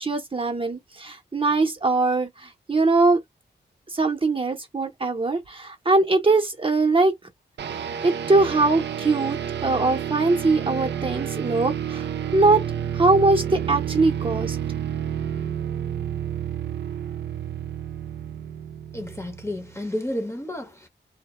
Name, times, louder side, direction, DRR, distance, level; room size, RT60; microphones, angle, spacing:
voice 1, 0.0-3.2 3.9-7.1 8.0-12.6 12.9-14.6, right 3 dB, 30° right, 0.7 m, -22 dB
sound 1, 7.6-19.8, right 9 dB, 70° right, 0.4 m, -30 dB
voice 2, 18.9-20.9, left 1 dB, 15° left, 0.8 m, -31 dB
2.0 x 2.0 x 2.9 m
wide cardioid pair, 85°, 18 cm